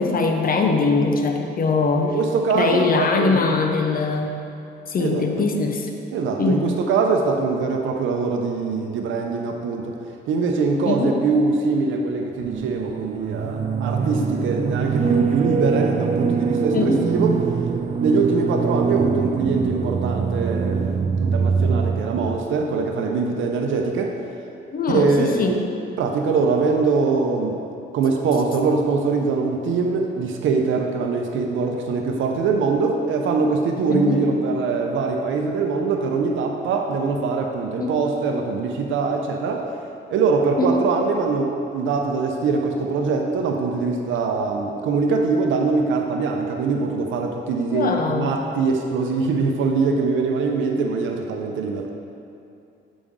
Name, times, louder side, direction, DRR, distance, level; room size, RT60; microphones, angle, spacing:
voice 1, 0.0-2.2 2.5-4.4 4.9-5.9 6.4-6.6 10.8-11.2 16.7-17.0 24.7-25.6 33.9-34.3 37.8-37.9 40.6-40.8 47.7-48.4, left 4 dB, 45° left, 3 dB, 0.8 m, -21 dB
voice 2, 2.0-3.5 5.0-5.5 6.1-9.9 10.3-17.3 18.0-24.1 24.9-25.6 26.0-27.6 27.9-39.7 40.1-51.9, right 4 dB, 80° right, 3 dB, 0.7 m, -23 dB
sound 1, 12.4-22.4, right 5 dB, 35° right, 0.4 m, -23 dB
8.3 x 5.1 x 3.7 m, 2.6 s
cardioid pair, 90°, 20 cm